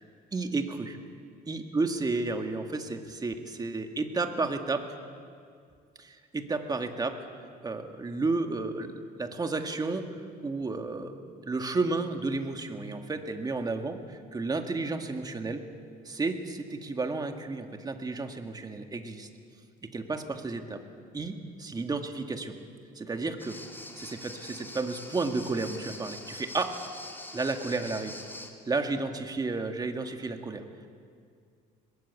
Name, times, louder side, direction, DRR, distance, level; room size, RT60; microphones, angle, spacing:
voice 1, 0.3-1.0 1.5-4.8 6.0-7.2 7.6-10.0 10.4-15.6 16.1-19.3 19.8-20.8 21.1-22.6 23.0-23.6 24.0-26.8 27.3-28.2 28.7-30.6, right 3 dB, 25° right, 5 dB, 2.0 m, -32 dB
sound 1, 23.4-28.5, left 2 dB, 10° left, 2.7 m, -44 dB
22.0 x 20.5 x 8.4 m, 2.2 s
cardioid pair, 110°, 17 cm